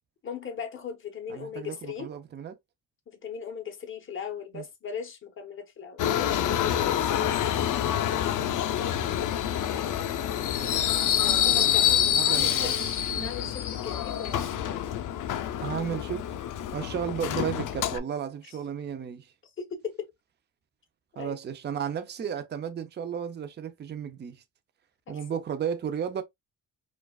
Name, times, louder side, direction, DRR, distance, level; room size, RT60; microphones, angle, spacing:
voice 1, 0.2-2.1 3.1-7.4 11.1-12.7 13.2-14.9 19.6-20.1 21.1-21.4 25.1-25.4, left 7 dB, 30° left, 0.9 m, -39 dB
voice 2, 1.3-2.6 4.5-4.6 10.6-13.5 15.6-16.2 16.7-19.3 21.2-24.4 25.1-26.2, right 8 dB, 30° right, 0.5 m, -34 dB
Subway metro underground, 6.0-18.0, left 10 dB, 55° left, 0.5 m, -27 dB
4.7 x 2.3 x 2.3 m
cardioid pair, 145°, 38 cm